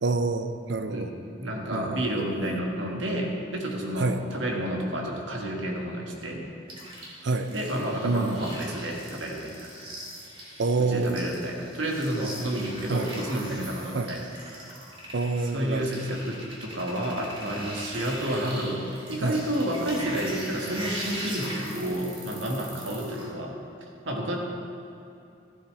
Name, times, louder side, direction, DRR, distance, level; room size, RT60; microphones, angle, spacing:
voice 1, 0.0-1.1 1.7-2.1 4.0-4.2 7.2-7.5 8.0-8.5 10.6-11.3 12.9-13.1 13.9-14.1 15.1-16.0 19.2-19.4, right 3 dB, 70° right, 9 dB, 0.6 m, -27 dB
voice 2, 0.9-6.6 7.5-9.7 10.8-14.3 15.5-23.5 24.0-24.4, right 1 dB, 90° right, -1 dB, 1.7 m, -30 dB
sound 1, 6.7-23.3, right 1 dB, 30° right, 1.8 m, -40 dB
14.0 x 11.5 x 3.3 m, 2.7 s
head